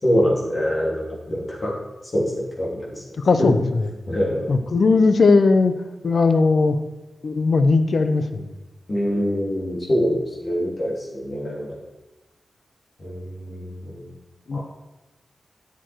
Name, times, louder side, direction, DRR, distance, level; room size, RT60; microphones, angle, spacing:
voice 1, 0.0-1.7 2.1-2.9 3.4-3.5 4.1-4.5 8.9-11.7 13.0-14.1 14.5-14.6, equal, 50° left, -4 dB, 3.3 m, -24 dB
voice 2, 3.2-3.9 4.5-5.8 6.0-6.8 7.2-8.4 14.5-14.6, left 3 dB, 70° left, 10 dB, 0.8 m, -18 dB
10.5 x 7.1 x 4.6 m, 1.1 s
cardioid pair, 60°, 0 cm